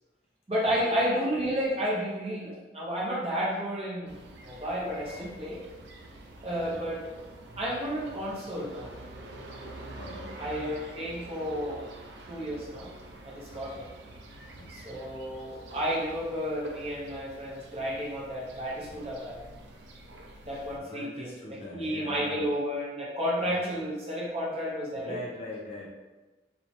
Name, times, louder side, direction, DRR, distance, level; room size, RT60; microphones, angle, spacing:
voice 1, 0.5-4.2 4.4-5.6 6.4-7.0 7.6-8.9 10.4-11.9 12.3-12.9 13.2-13.9 14.7-19.4 20.4-21.3 21.7-25.2, equal, 35° right, -5 dB, 0.6 m, -31 dB
sound 1, 4.1-20.8, right 2 dB, 80° right, 0.4 m, -47 dB
voice 2, 9.9-10.6 13.5-13.8 14.6-14.8 19.5-19.7 20.8-22.5 23.4-23.8 24.9-25.9, left 1 dB, 35° left, -3 dB, 0.4 m, -42 dB
2.9 x 2.1 x 2.6 m, 1.2 s
head